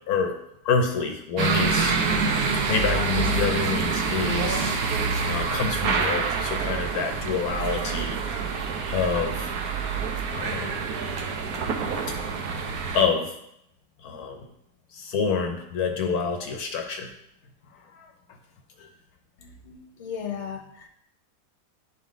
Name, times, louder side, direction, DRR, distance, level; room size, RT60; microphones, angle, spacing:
voice 1, 0.6-2.0 2.7-4.8 5.2-8.2 8.9-9.5 10.3-10.9 12.9-13.3 14.0-14.5 14.9-17.1 17.9-18.1 18.8-18.9, left 5 dB, 70° left, 4 dB, 1.1 m, -27 dB
sound 1, 1.4-13.1, right 5 dB, 65° right, 1.2 m, -26 dB
voice 2, 19.4-20.9, left 7 dB, 50° left, 1 dB, 1.2 m, -36 dB
10.5 x 3.7 x 3.6 m, 0.80 s
omnidirectional pair, 1.8 m